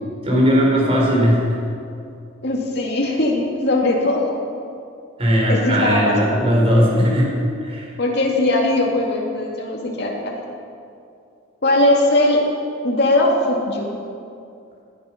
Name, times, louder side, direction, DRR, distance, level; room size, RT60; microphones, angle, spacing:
voice 1, 0.2-1.4 5.2-7.3 7.6-7.9, equal, 30° right, -3 dB, 3.9 m, -17 dB
voice 2, 2.4-4.2 5.5-6.2 8.0-10.4 11.6-12.4 12.8-13.9, left 1 dB, 55° left, -2 dB, 2.5 m, -19 dB
18.5 x 9.6 x 5.9 m, 2.5 s
head